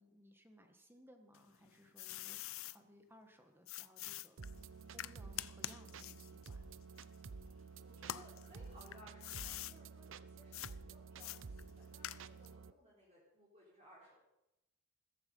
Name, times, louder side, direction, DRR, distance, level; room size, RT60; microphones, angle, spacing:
voice 1, 0.0-4.6 4.9-6.7, equal, 10° right, 5 dB, 1.5 m, -63 dB
sound 1, 1.3-2.8 3.7-7.6 8.0-9.8 10.5-10.7 11.2-12.5, left 13 dB, 65° left, 0.5 m, -46 dB
sound 2, 4.4-12.7, right 4 dB, 60° right, 0.6 m, -52 dB
voice 2, 7.8-14.3, right 1 dB, 30° right, -7 dB, 3.9 m, -62 dB
16.0 x 14.5 x 5.6 m, 0.91 s
head